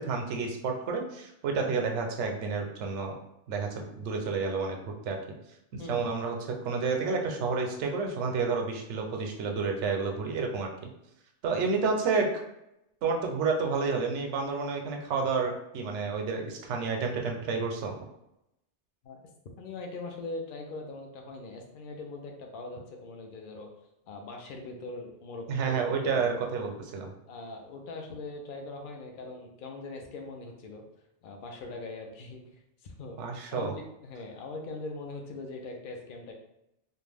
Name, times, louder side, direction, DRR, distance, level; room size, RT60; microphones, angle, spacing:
voice 1, 0.0-3.2 3.5-4.8 5.0-5.2 5.7-10.7 11.4-12.3 13.0-17.9 25.5-27.1 33.2-33.7, right 4 dB, 85° right, 2 dB, 0.9 m, -30 dB
voice 2, 5.8-6.1 19.0-19.2 19.6-23.7 24.1-26.2 27.3-30.8 31.2-32.4 32.8-33.2 33.5-36.3, left 3 dB, 60° left, 2 dB, 0.6 m, -41 dB
2.5 x 2.2 x 3.3 m, 0.83 s
omnidirectional pair, 1.2 m